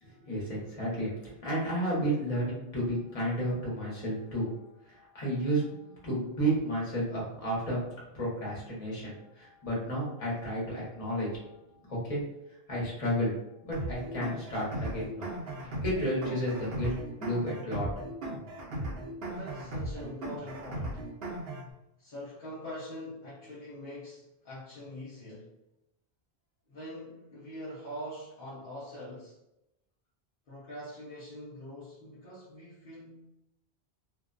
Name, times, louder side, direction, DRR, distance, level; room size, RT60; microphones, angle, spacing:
voice 1, 0.0-4.5 4.9-5.6 6.0-11.3 11.9-12.2 12.7-13.3 13.6-15.3 15.8-17.9, right 1 dB, 35° left, -6 dB, 1.0 m, -32 dB
sound 1, 13.7-21.7, right 1 dB, 70° right, 0.8 m, -37 dB
voice 2, 19.2-21.1 22.0-25.6 26.7-29.4 30.5-33.3, equal, 60° left, -9 dB, 0.9 m, -44 dB
2.5 x 2.1 x 2.4 m, 0.88 s
omnidirectional pair, 1.0 m